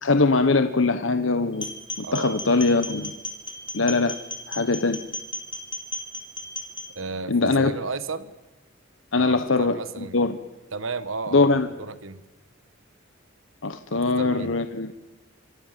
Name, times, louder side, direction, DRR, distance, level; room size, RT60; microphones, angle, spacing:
voice 1, 0.0-1.7 2.0-3.1 3.7-4.2 4.5-5.0 7.3-7.7 9.1-10.4 11.3-11.7 13.6-14.9, left 3 dB, 70° left, 9 dB, 1.2 m, -22 dB
sound 1, 1.5-6.9, left 2 dB, 25° left, 4.3 m, -35 dB
voice 2, 2.0-2.4 6.9-8.3 9.1-10.2 10.7-11.5 11.8-12.2 13.9-14.5, right 4 dB, 80° right, 13 dB, 1.4 m, -33 dB
27.5 x 26.5 x 7.6 m, 1.1 s
head